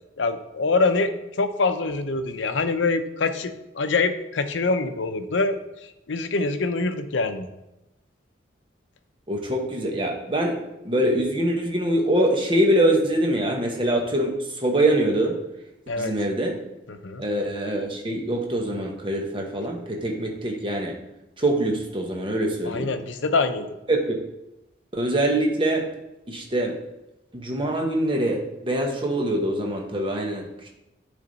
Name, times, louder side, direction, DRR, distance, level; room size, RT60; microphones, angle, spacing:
voice 1, 0.2-1.1 1.4-3.5 3.8-5.6 6.1-7.5 15.9-16.1 16.9-17.2 22.6-23.7, left 3 dB, 75° left, 9 dB, 0.6 m, -24 dB
voice 2, 9.3-10.6 10.8-15.4 16.0-16.6 17.2-20.9 21.4-22.9 23.9-24.2 24.9-25.9 26.3-26.8 27.3-30.7, right 1 dB, 25° right, 1 dB, 1.0 m, -24 dB
9.7 x 3.4 x 4.0 m, 0.93 s
head